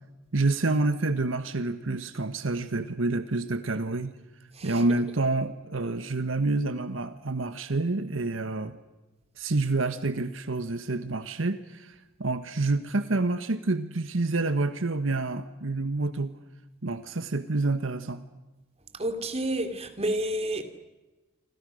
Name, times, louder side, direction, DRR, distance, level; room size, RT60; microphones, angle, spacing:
voice 1, 0.3-4.2 4.6-8.8 9.4-16.3 16.8-18.2, right 2 dB, 80° right, 11 dB, 1.3 m, -28 dB
voice 2, 19.0-20.6, right 1 dB, 30° right, 8 dB, 2.8 m, -29 dB
28.5 x 26.0 x 6.4 m, 1.1 s
head